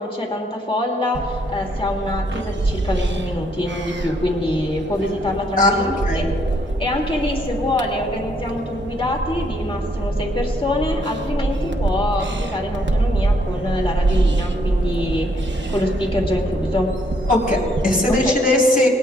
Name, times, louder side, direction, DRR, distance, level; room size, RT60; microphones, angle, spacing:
voice 1, 0.0-6.3 6.8-16.9 18.2-18.3, left 1 dB, 30° left, 0 dB, 2.4 m, -25 dB
sound 1, 1.1-18.3, right 2 dB, 85° right, 0.9 m, -24 dB
voice 2, 5.6-6.3 17.3-18.9, left 1 dB, 50° left, -3 dB, 3.7 m, -18 dB
20.5 x 18.0 x 2.4 m, 2.6 s
wide cardioid pair, 50°, 19 cm